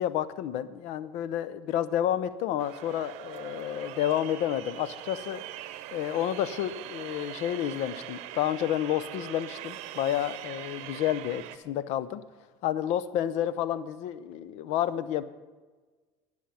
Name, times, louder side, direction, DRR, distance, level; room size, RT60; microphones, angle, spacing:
voice 1, 0.0-5.4 5.9-12.2 12.6-15.2, left 11 dB, 70° left, 15 dB, 0.7 m, -30 dB
sound 1, 2.6-11.6, right 13 dB, 70° right, 0.8 m, -42 dB
19.0 x 6.4 x 5.6 m, 1.3 s
supercardioid pair, 80°, 12 cm